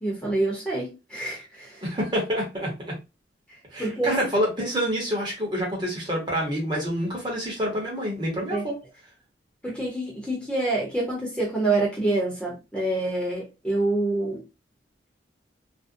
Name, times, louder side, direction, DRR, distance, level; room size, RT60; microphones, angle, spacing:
voice 1, 0.0-1.8 3.8-4.2 8.5-8.6 9.6-14.4, right 2 dB, 5° left, 0.8 m, -27 dB
voice 2, 1.8-2.7 3.7-8.7, equal, 25° right, 0.9 m, -27 dB
2.5 x 2.1 x 2.5 m
head